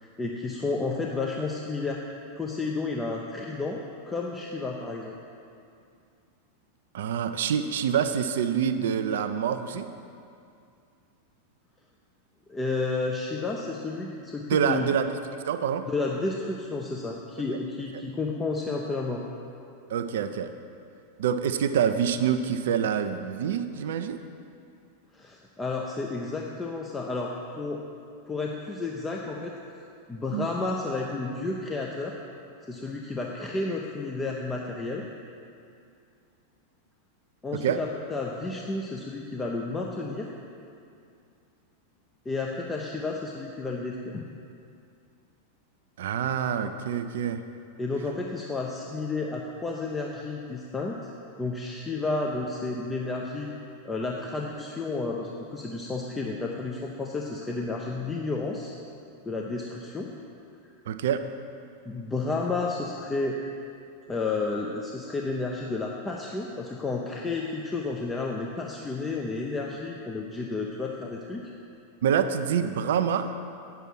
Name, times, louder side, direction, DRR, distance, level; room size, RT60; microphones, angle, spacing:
voice 1, 0.0-2.0 2.4-5.1 12.5-14.9 15.9-19.2 25.1-27.8 28.3-29.6 30.1-32.2 32.7-35.0 37.4-40.3 42.2-44.3 47.8-51.0 51.4-53.5 53.8-58.7 59.2-60.1 60.6-60.7 61.9-63.4 64.1-71.5, left 3 dB, 15° left, -1 dB, 0.7 m, -31 dB
voice 2, 6.9-9.9 14.5-15.1 15.5-15.9 19.9-20.5 21.2-24.2 30.3-30.5 37.6-37.8 46.0-47.4 60.9-61.2 72.0-73.4, right 8 dB, 60° right, 10 dB, 0.5 m, -26 dB
8.9 x 6.9 x 6.2 m, 2.5 s
figure-of-eight pair, 90°, 0 cm